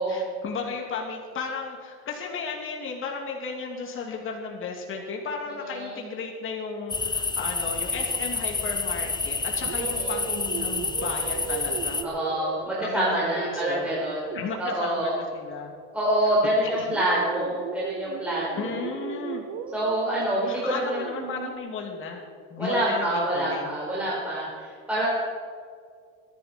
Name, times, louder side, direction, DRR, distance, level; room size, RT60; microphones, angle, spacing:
voice 1, 0.1-12.2 12.8-13.9 14.3-15.7 16.8-16.9 18.6-19.4 20.5-22.2 22.5-23.7 24.9-25.1, left 5 dB, 45° left, 1 dB, 2.5 m, -34 dB
voice 2, 5.6-6.0 9.9-10.1 12.0-14.2 14.6-15.2 15.9-18.8 19.7-21.0 22.6-25.1, right 1 dB, 5° right, -7 dB, 4.6 m, -26 dB
sound 1, 6.9-12.0, left 4 dB, 15° left, 1.0 m, -29 dB
sound 2, 9.6-15.2 16.6-21.5, right 9 dB, 60° right, 1.2 m, -37 dB
22.5 x 11.0 x 4.4 m, 2.1 s
cardioid pair, 105°, 29 cm